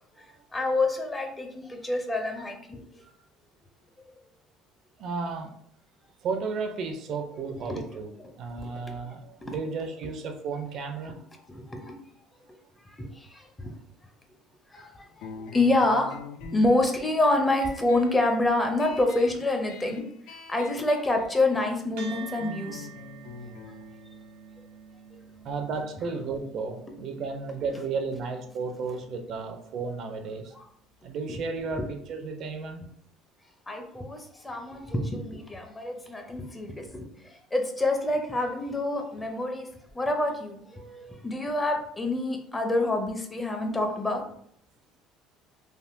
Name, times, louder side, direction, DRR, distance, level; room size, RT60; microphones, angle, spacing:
voice 1, 0.5-3.0 7.7-7.8 8.6-8.7 9.4-9.6 11.6-12.0 12.9-13.7 14.7-16.2 16.5-20.0 20.5-22.9 31.8-31.9 33.7-39.7 39.9-40.8 41.2-44.2, left 2 dB, 15° left, 4 dB, 0.5 m, -27 dB
voice 2, 5.0-5.6 6.2-11.3 25.4-30.5 31.0-32.9 40.7-41.2, right 4 dB, 55° right, 6 dB, 0.4 m, -33 dB
sound 1, 15.2-26.3, left 4 dB, 80° left, 0.4 m, -46 dB
sound 2, 22.0-30.6, right 8 dB, 85° right, 1.0 m, -48 dB
3.4 x 2.2 x 2.6 m, 0.68 s
cardioid pair, 120°, 0 cm